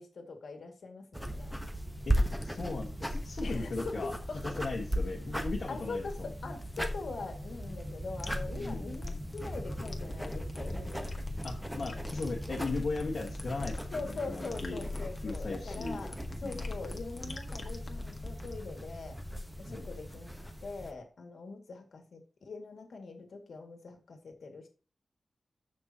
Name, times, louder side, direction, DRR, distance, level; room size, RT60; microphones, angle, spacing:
voice 1, 0.0-1.5 3.4-4.4 5.7-11.1 13.9-19.2 19.6-20.3 20.6-24.7, left 3 dB, 85° left, 3 dB, 2.3 m, -43 dB
sound 1, 1.1-20.9, equal, 5° right, 1.2 m, -37 dB
voice 2, 2.0-4.1 4.4-6.3 8.6-8.9 11.4-14.8 15.2-16.0 16.4-16.7 19.7-19.9, left 3 dB, 65° left, -3 dB, 1.7 m, -37 dB
sound 2, 8.2-18.6, left 3 dB, 35° left, 1.5 m, -44 dB
14.0 x 6.0 x 3.0 m, 0.36 s
wide cardioid pair, 125°, 0 cm